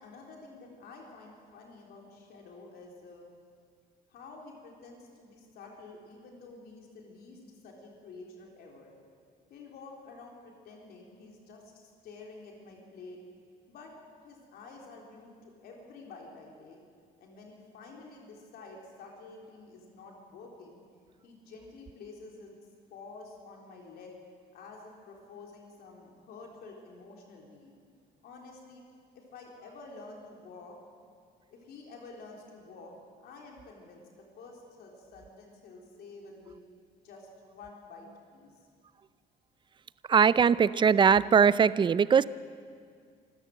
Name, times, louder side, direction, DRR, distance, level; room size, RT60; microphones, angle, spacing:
voice 1, 0.0-3.3 4.1-8.9 9.5-13.2 13.7-13.9 14.2-16.8 17.2-20.8 21.2-22.5 22.9-24.2 24.5-27.8 28.2-28.8 29.1-30.8 31.5-36.6 37.0-38.5, left 3 dB, 70° left, 0 dB, 3.9 m, -49 dB
voice 2, 40.1-42.2, right 7 dB, 30° right, 18 dB, 0.5 m, -21 dB
26.5 x 13.5 x 7.8 m, 2.1 s
cardioid pair, 110°, 17 cm